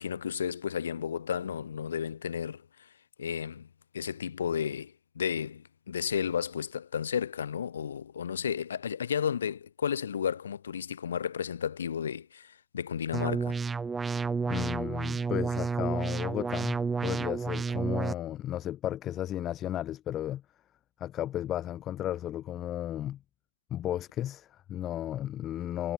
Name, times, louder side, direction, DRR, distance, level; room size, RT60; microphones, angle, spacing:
voice 1, 0.0-2.9 3.2-3.7 3.9-13.6, left 8 dB, 70° left, 2.0 m, -33 dB
sound 1, 13.1-18.1, right 5 dB, 15° right, 0.4 m, -31 dB
voice 2, 14.5-20.4 21.0-23.2 23.7-25.9, left 12 dB, 30° left, 1.7 m, -34 dB
figure-of-eight pair, 90°, 0 cm